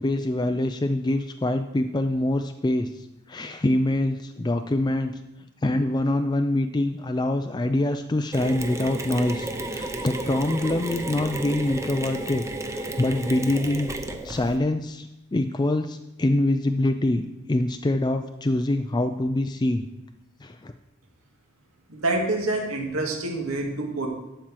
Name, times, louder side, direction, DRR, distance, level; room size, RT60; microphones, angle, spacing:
voice 1, 0.0-5.2 5.6-12.4 12.7-13.9 14.2-19.8 20.4-20.7, left 1 dB, 20° left, 7 dB, 0.4 m, -25 dB
Mechanisms, 8.3-14.6, right 2 dB, 15° right, 0.8 m, -33 dB
voice 2, 21.9-24.1, right 2 dB, 80° right, 1 dB, 2.1 m, -27 dB
12.0 x 4.4 x 7.5 m, 0.95 s
head